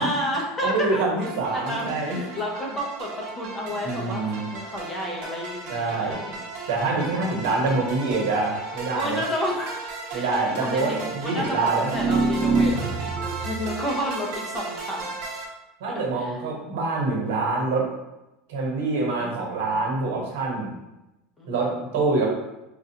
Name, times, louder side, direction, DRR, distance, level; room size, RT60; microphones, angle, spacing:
voice 1, 0.0-1.0 1.5-6.4 7.2-7.7 8.9-9.8 10.1-10.3 10.6-12.8 13.4-15.2 15.9-16.4 19.2-19.8 21.4-21.8, equal, 15° left, -2 dB, 0.7 m, -31 dB
voice 2, 0.6-2.2 3.8-4.5 5.7-6.2 6.7-9.2 10.1-11.9 15.8-17.9 18.5-20.7 21.5-22.3, right 3 dB, 80° right, -2 dB, 1.2 m, -25 dB
sound 1, 1.2-15.4, right 3 dB, 65° right, 1.0 m, -36 dB
sound 2, 11.9-13.7, right 3 dB, 35° right, 0.4 m, -24 dB
4.6 x 2.4 x 2.8 m, 0.97 s
supercardioid pair, 150°, 0 cm